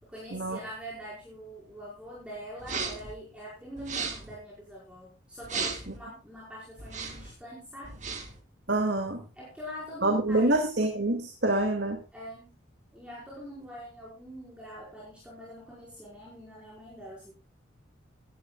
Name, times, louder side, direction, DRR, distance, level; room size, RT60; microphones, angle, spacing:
voice 1, 0.0-8.0 9.3-10.7 12.1-12.5 12.9-17.3, equal, 5° right, -6 dB, 5.5 m, -44 dB
sound 1, 2.6-3.1 3.8-4.3 5.4-6.0 6.8-7.3 7.8-8.4, right 5 dB, 35° right, 2.5 m, -35 dB
voice 2, 8.7-9.2 10.0-12.0, right 2 dB, 60° right, 3 dB, 2.4 m, -26 dB
17.5 x 13.0 x 2.4 m, 0.30 s
head